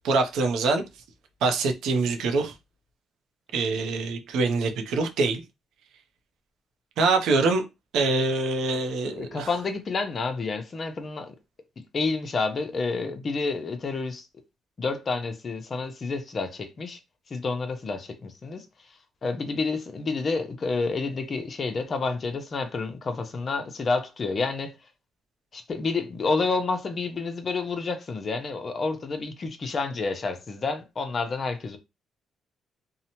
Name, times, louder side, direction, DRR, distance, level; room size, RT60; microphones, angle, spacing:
voice 1, 0.0-0.8 1.4-2.5 3.5-5.4 7.0-7.6 7.9-9.5, right 3 dB, 80° right, 0.6 m, -24 dB
voice 2, 9.2-11.3 11.9-14.3 14.8-17.0 17.3-18.7 19.2-24.8 25.5-31.8, left 4 dB, 40° left, 0.6 m, -29 dB
2.7 x 2.1 x 2.8 m
cardioid pair, 90°, 0 cm